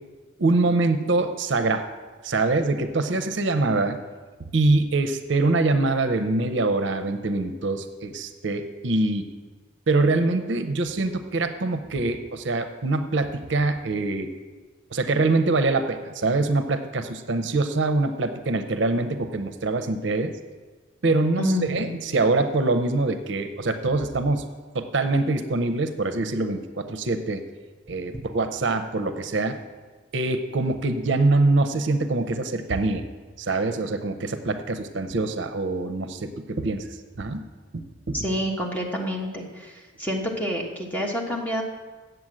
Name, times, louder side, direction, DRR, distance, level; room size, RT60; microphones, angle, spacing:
voice 1, 0.4-1.9 2.2-4.0 4.5-9.3 9.9-14.3 14.9-20.4 21.0-24.5 24.7-27.4 27.9-29.6 30.1-33.0 33.4-36.9 37.2-37.4 37.7-38.2, right 2 dB, 65° right, 9 dB, 0.6 m, -24 dB
voice 2, 21.4-22.0 38.1-41.6, equal, 10° left, 0 dB, 1.2 m, -28 dB
7.8 x 7.8 x 7.5 m, 1.4 s
head